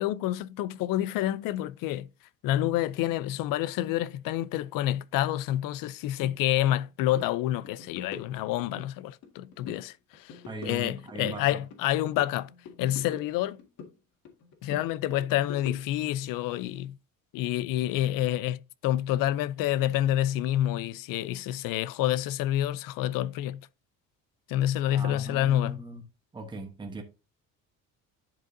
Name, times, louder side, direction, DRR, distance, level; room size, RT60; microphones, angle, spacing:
voice 1, 0.0-2.1 2.4-12.5 12.8-13.6 14.6-17.0 17.3-23.7 24.5-25.8, left 13 dB, 80° left, 0.5 m, -28 dB
sound 1, 6.2-6.4 6.7-6.9 7.1-7.3 7.6-8.9 9.2-9.9 10.1-11.9 12.2-13.9 14.3-16.1, left 5 dB, 60° left, 1.8 m, -44 dB
voice 2, 10.4-11.6 24.8-26.0 26.3-27.0, right 2 dB, 15° right, 1.1 m, -39 dB
10.5 x 4.8 x 2.6 m
cardioid pair, 160°, 33 cm